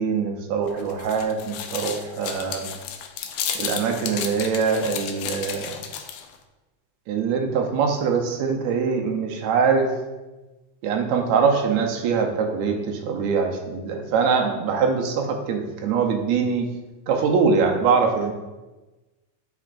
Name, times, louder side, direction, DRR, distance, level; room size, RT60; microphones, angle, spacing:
voice 1, 0.0-2.7 3.5-5.8 7.1-9.9 10.8-16.7 17.1-18.3, right 5 dB, 75° right, 3 dB, 1.9 m, -23 dB
sound 1, 0.7-6.4, left 8 dB, 75° left, 1.6 m, -32 dB
11.0 x 4.2 x 2.5 m, 1.1 s
omnidirectional pair, 3.4 m